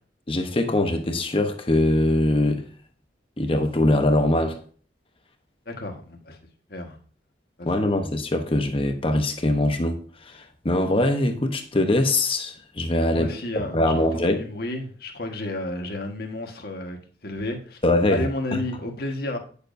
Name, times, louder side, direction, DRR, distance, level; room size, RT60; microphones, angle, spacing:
voice 1, 0.3-2.7 3.4-4.6 7.6-14.5 17.8-18.6, left 1 dB, 30° left, 0.9 m, -22 dB
voice 2, 5.6-6.4 6.7-7.0 7.6-7.7 13.1-17.8 18.1-19.4, left 1 dB, 55° left, 1.4 m, -32 dB
9.5 x 6.9 x 2.6 m
head